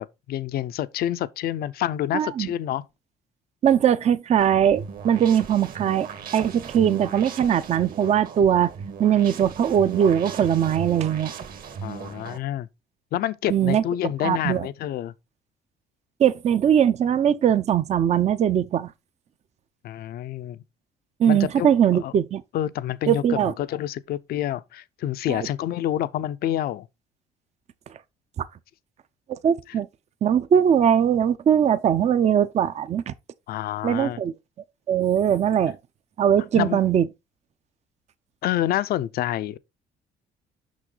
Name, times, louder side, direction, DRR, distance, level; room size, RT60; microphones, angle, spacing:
voice 1, 0.0-2.8 11.8-12.7 13.1-15.1 19.8-20.6 21.3-22.1 22.5-26.9 33.5-34.2 36.5-36.8 38.4-39.6, left 12 dB, 65° left, 0.6 m, -28 dB
voice 2, 2.1-2.5 3.6-8.7 9.0-11.3 13.5-13.8 14.2-14.7 16.2-18.9 21.2-22.4 23.1-23.5 25.3-25.5 28.4-28.5 29.3-29.9 30.2-33.1 33.8-34.3 34.9-35.8 36.2-37.0, right 9 dB, 40° right, 0.6 m, -21 dB
sound 1, 4.4-12.4, right 6 dB, 60° right, 1.6 m, -37 dB
6.3 x 5.9 x 3.9 m
cardioid pair, 110°, 17 cm